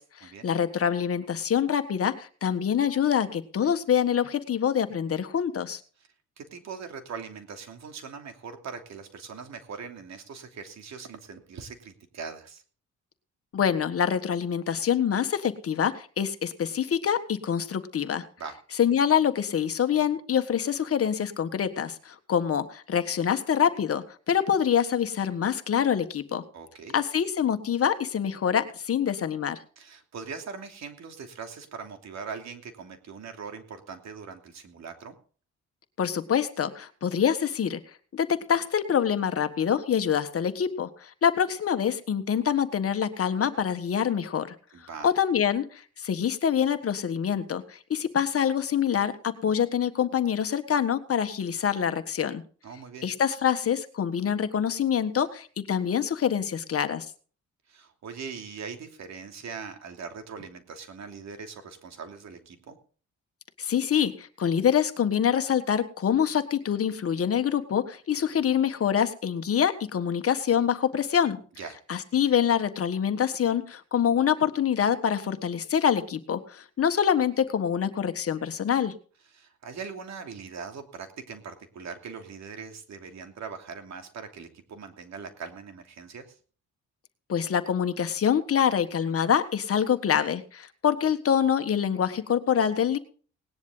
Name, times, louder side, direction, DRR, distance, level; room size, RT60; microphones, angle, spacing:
voice 1, 0.0-5.8 13.5-18.3 18.8-26.4 26.9-29.6 36.0-37.8 38.1-44.6 45.0-52.4 53.0-57.1 63.6-71.4 71.9-78.9 87.3-93.0, left 8 dB, 50° left, 9 dB, 1.6 m, -25 dB
voice 2, 6.4-12.6 18.4-18.6 26.5-27.0 29.8-35.1 44.7-45.1 52.6-53.1 57.7-62.8 71.6-71.8 79.3-86.4, right 5 dB, 65° right, 6 dB, 2.9 m, -41 dB
19.0 x 10.5 x 3.9 m, 0.41 s
cardioid pair, 90°, 30 cm